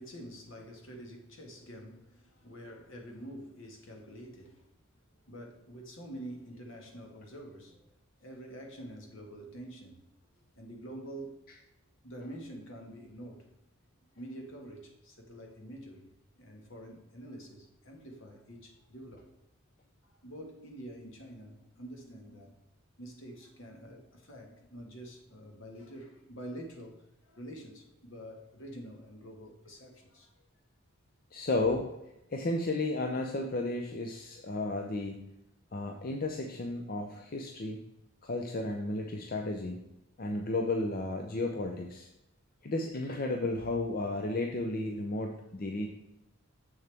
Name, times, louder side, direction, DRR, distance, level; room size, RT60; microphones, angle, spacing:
voice 1, 0.0-4.7 5.3-10.0 10.5-11.4 12.0-13.5 14.1-16.1 16.3-19.2 20.0-22.5 23.0-30.3, right 1 dB, 65° left, 2 dB, 1.6 m, -47 dB
voice 2, 31.3-31.8 32.3-35.2 35.7-37.8 38.2-39.8 40.2-42.1 42.6-45.9, left 2 dB, 45° left, 3 dB, 0.6 m, -33 dB
7.1 x 6.7 x 3.4 m, 0.90 s
head